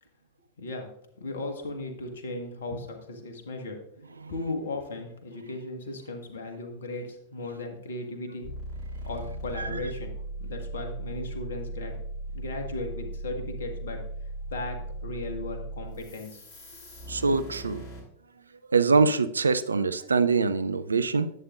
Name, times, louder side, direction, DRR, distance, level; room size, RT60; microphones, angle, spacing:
voice 1, 0.6-0.9 1.2-3.8 4.3-8.5 9.0-10.1 10.4-12.0 12.3-14.0 14.5-16.5 16.7-16.8, left 2 dB, 65° left, 4 dB, 1.5 m, -36 dB
sound 1, 8.4-18.0, right 2 dB, 40° left, 3.5 m, -38 dB
voice 2, 17.1-17.8 18.7-21.3, right 4 dB, 75° right, 13 dB, 0.4 m, -24 dB
10.5 x 8.6 x 2.5 m, 0.73 s
figure-of-eight pair, 90°, 0 cm